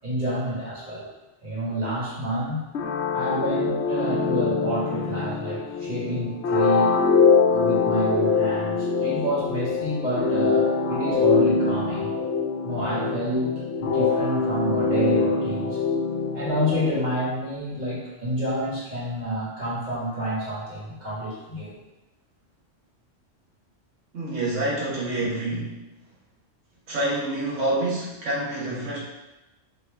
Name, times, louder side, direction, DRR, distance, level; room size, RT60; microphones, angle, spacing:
voice 1, 0.0-1.1 1.4-2.7 3.1-7.0 7.5-12.1 12.6-15.8 16.3-21.8, equal, 35° right, -8 dB, 1.8 m, -28 dB
sound 1, 2.7-17.3, left 5 dB, 70° left, 0.9 m, -24 dB
voice 2, 24.1-25.7 26.9-29.0, right 2 dB, 80° right, -6 dB, 1.7 m, -27 dB
4.9 x 3.0 x 3.4 m, 1.1 s
omnidirectional pair, 1.3 m